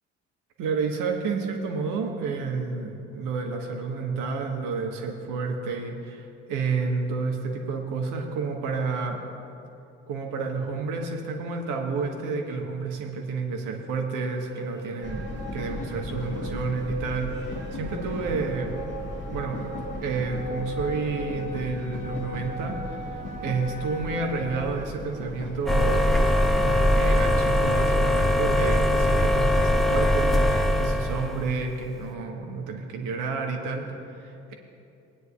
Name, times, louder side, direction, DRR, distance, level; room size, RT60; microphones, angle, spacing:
voice 1, 0.6-9.2 10.1-18.8 19.3-19.7 20.0-23.0 23.4-34.5, right 4 dB, 65° right, 2 dB, 1.3 m, -30 dB
sound 1, 14.4-25.7, equal, 30° right, 1.3 m, -39 dB
sound 2, 15.0-30.3, left 1 dB, 30° left, 1.5 m, -38 dB
sound 3, 25.7-31.6, left 1 dB, ahead, 1.0 m, -21 dB
21.0 x 9.4 x 2.4 m, 2.7 s
hypercardioid pair, 50°, 35 cm